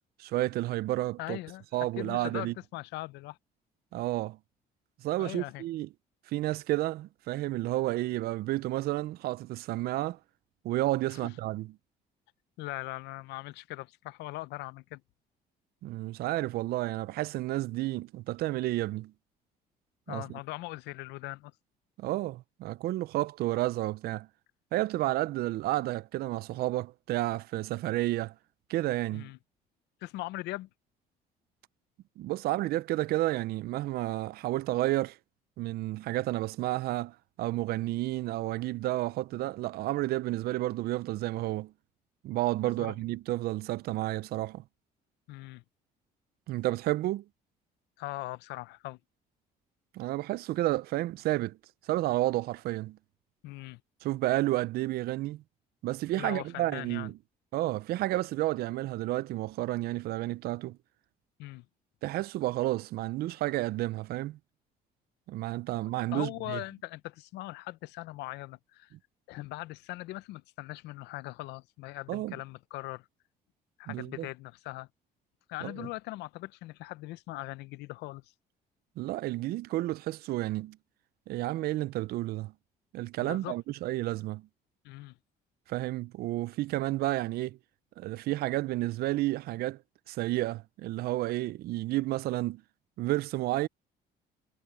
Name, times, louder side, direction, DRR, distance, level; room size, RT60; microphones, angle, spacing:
voice 1, 0.2-1.4 1.7-2.5 3.9-4.4 5.0-5.9 6.3-10.2 10.6-11.7 15.8-19.1 20.1-20.4 22.0-24.3 24.7-28.3 28.7-29.3 32.2-35.2 35.6-41.7 42.2-44.6 46.5-47.2 49.9-51.6 51.8-53.0 54.0-55.4 55.8-57.1 57.5-60.8 62.0-64.4 65.3-66.6 72.1-72.3 73.9-74.3 75.6-75.9 79.0-80.8 81.3-82.5 82.9-84.5 85.7-87.6 88.0-89.8 90.1-92.6 93.0-93.7, right 17 dB, 65° right, 0.4 m, -31 dB
voice 2, 1.2-1.6 2.0-3.4 5.2-5.6 11.1-11.3 12.6-15.0 20.1-21.5 29.1-29.4 30.0-30.7 42.6-43.0 45.3-45.6 48.0-49.0 53.4-53.8 56.2-57.1 61.4-61.7 66.1-68.9 69.3-73.1 73.8-74.9 75.5-78.3 83.2-83.6 84.8-85.2, left 19 dB, 85° left, 0.6 m, -40 dB
cardioid pair, 110°, 17 cm